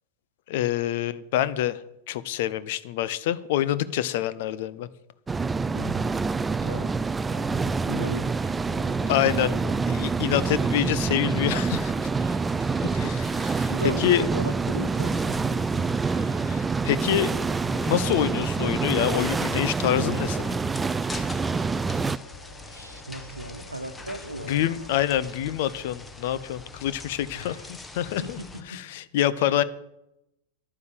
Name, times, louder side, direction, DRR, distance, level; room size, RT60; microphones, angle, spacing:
voice 1, 0.5-1.8 2.1-4.9 9.1-9.5 9.9-12.1 13.6-13.7 14.0-14.2 16.5-17.3 17.6-20.6 24.5-28.4 28.7-29.6, left 12 dB, 50° left, 16 dB, 0.7 m, -26 dB
sound 1, 5.3-22.2, right 4 dB, 15° right, 0.4 m, -26 dB
voice 2, 5.7-6.1 6.6-6.9 7.3-10.1 12.1-13.3 13.7-16.6 22.6-24.9 27.3-27.7 28.1-28.8 29.4-29.6, right 1 dB, 85° right, 10 dB, 1.1 m, -38 dB
sound 2, 12.4-28.6, left 3 dB, 15° left, 1.3 m, -44 dB
sound 3, 17.0-24.9, equal, 90° left, 2.4 m, -49 dB
11.0 x 9.5 x 7.6 m, 0.85 s
figure-of-eight pair, 90°, 0 cm